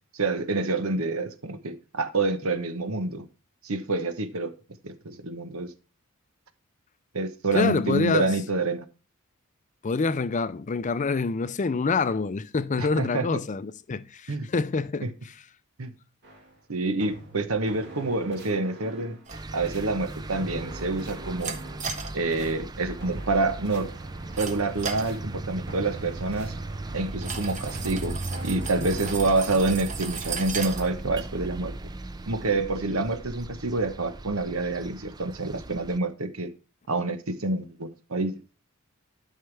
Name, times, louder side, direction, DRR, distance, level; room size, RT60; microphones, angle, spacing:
voice 1, 0.0-3.2 3.6-4.5 4.8-5.7 7.1-8.8 12.8-13.3 14.3-14.5 15.0-15.1 15.8-15.9 16.7-19.2 19.5-21.6 22.1-23.9 24.4-26.5 26.9-31.8 32.3-36.5 36.9-38.4, right 3 dB, 85° right, 1.0 m, -27 dB
voice 2, 7.5-8.3 9.8-15.1, left 4 dB, 35° left, 0.5 m, -26 dB
Epic Orchestral Cue, 16.2-16.6 17.0-19.4 19.6-22.0 22.3-24.6 25.0-27.2 27.6-29.3, right 2 dB, 55° right, 1.9 m, -43 dB
sound 1, 19.3-36.0, right 2 dB, 20° right, 0.4 m, -37 dB
sound 2, 19.3-32.6, right 5 dB, 35° right, 1.2 m, -40 dB
11.5 x 5.6 x 3.4 m
head